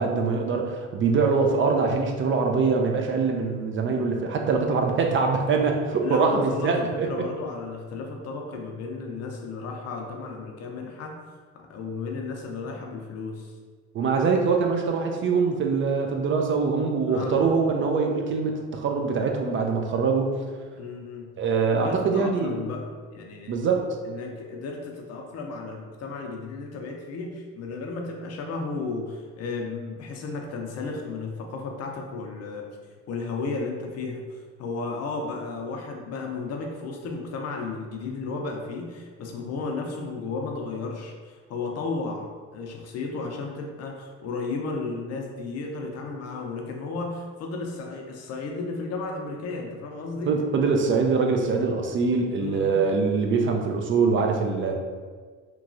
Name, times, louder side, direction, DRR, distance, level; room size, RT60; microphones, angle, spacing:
voice 1, 0.0-7.1 13.9-20.4 21.4-22.6 23.5-23.9 50.3-54.7, right 4 dB, 45° right, 2 dB, 0.4 m, -23 dB
voice 2, 4.4-4.9 6.0-11.2 11.5-13.5 17.1-17.5 20.8-21.3 21.7-23.5 24.0-32.6 33.1-34.2 34.6-50.4 52.4-52.8, left 3 dB, 60° left, 1 dB, 0.6 m, -34 dB
3.0 x 2.3 x 2.6 m, 1.5 s
supercardioid pair, 85°, 29 cm